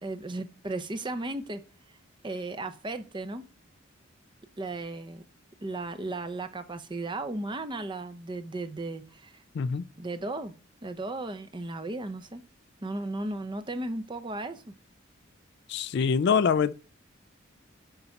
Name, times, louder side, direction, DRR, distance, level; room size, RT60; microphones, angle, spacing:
voice 1, 0.0-1.6 2.2-3.4 4.6-5.2 5.6-9.4 10.0-10.5 10.8-12.4 12.8-14.6, right 2 dB, 25° right, 0.7 m, -35 dB
voice 2, 15.7-16.7, left 6 dB, 55° left, 0.3 m, -24 dB
6.9 x 5.4 x 5.7 m
head